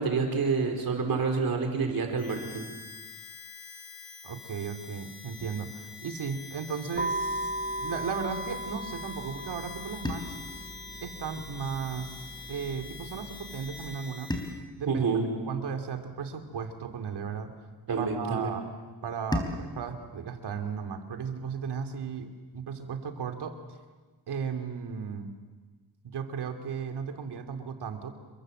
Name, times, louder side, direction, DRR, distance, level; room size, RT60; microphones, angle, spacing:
voice 1, 0.0-2.6 14.9-15.3 17.9-18.5, right 4 dB, 60° right, 4 dB, 4.9 m, -28 dB
Harmonica, 2.2-14.6, left 5 dB, 70° left, 3.9 m, -46 dB
voice 2, 4.2-7.5 7.8-10.4 11.0-14.3 14.8-15.0 15.5-17.5 18.0-18.7 19.0-23.5 24.3-25.3 26.0-28.1, right 6 dB, 85° right, 6 dB, 2.7 m, -35 dB
sound 1, 6.9-13.9, right 1 dB, 20° right, 1.5 m, -37 dB
sound 2, 10.0-12.4 14.3-16.8 19.3-21.9, left 1 dB, 10° left, 3.9 m, -40 dB
28.5 x 23.0 x 7.8 m, 1.4 s
cardioid pair, 105°, 39 cm